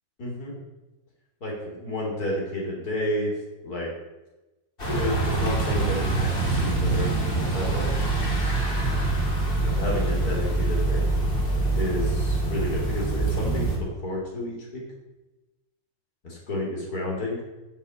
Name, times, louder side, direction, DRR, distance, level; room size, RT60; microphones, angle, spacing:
voice 1, 0.2-0.5 1.4-3.3 3.6-3.9 4.8-7.9 9.6-11.1 11.8-14.8 16.2-17.4, left 1 dB, 80° left, -2 dB, 4.0 m, -31 dB
sound 1, 4.8-13.8, right 3 dB, 35° left, 2.9 m, -25 dB
9.8 x 8.5 x 8.0 m, 1.1 s
omnidirectional pair, 1.6 m